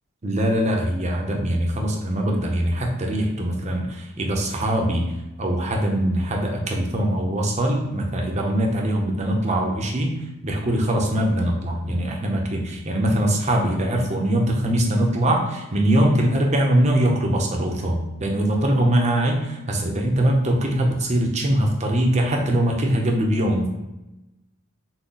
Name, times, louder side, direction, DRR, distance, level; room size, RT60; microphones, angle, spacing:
voice 1, 0.2-5.1 5.4-10.1 10.4-23.7, right 1 dB, 35° right, 1 dB, 0.7 m, -22 dB
6.0 x 2.2 x 3.8 m, 0.99 s
head